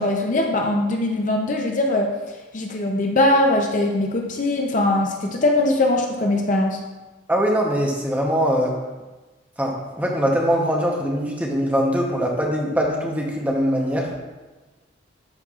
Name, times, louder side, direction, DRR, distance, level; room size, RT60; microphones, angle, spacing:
voice 1, 0.0-2.1 2.5-6.8, left 2 dB, 40° left, 1 dB, 0.6 m, -21 dB
voice 2, 7.3-8.7 9.6-14.1, equal, 10° right, -1 dB, 0.8 m, -22 dB
12.0 x 4.5 x 2.4 m, 1.2 s
head